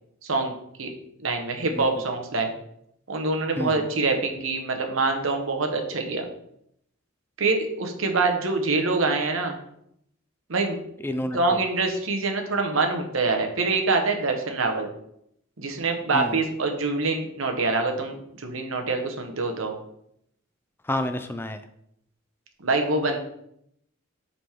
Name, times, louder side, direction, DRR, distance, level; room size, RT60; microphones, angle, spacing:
voice 1, 0.2-0.5 0.8-0.9 1.2-2.5 3.1-6.3 7.4-9.6 10.5-10.8 11.3-14.9 15.6-19.8 22.6-23.2, right 3 dB, 80° right, 4 dB, 1.1 m, -25 dB
voice 2, 11.0-11.4 16.1-16.4 20.9-21.6, left 1 dB, 10° left, 9 dB, 0.3 m, -28 dB
7.5 x 4.1 x 3.5 m, 0.73 s
head